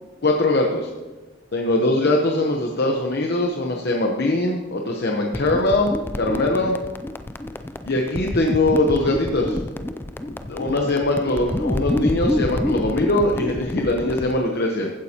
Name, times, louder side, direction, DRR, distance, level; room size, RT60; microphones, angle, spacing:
voice 1, 0.2-0.9 1.5-6.8 7.9-9.6 10.5-14.9, left 2 dB, 55° left, 1 dB, 0.9 m, -21 dB
sound 1, 5.3-14.4, left 1 dB, 10° left, 0.3 m, -28 dB
15.0 x 8.7 x 2.9 m, 1.2 s
head